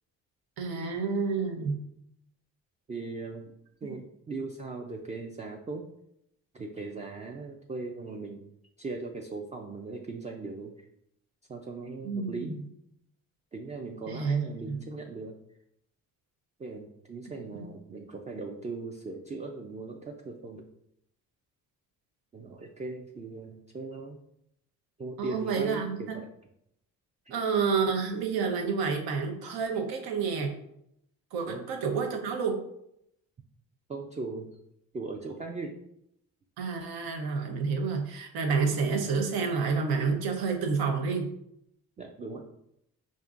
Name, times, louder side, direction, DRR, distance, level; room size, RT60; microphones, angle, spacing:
voice 1, 0.6-1.8 12.0-12.6 14.1-14.8 17.4-17.7 25.2-26.2 27.3-30.5 31.3-32.6 36.6-41.3, right 5 dB, 80° right, 3 dB, 0.8 m, -29 dB
voice 2, 2.9-3.5 3.8-5.9 6.5-8.5 8.8-10.7 11.5-12.6 13.5-15.4 16.6-20.7 22.3-24.2 25.0-26.3 27.3-27.4 31.5-31.7 33.9-34.6 34.9-35.7 42.0-42.5, right 3 dB, 20° right, 2 dB, 0.3 m, -39 dB
5.2 x 2.5 x 2.4 m, 0.77 s
cardioid pair, 95°, 37 cm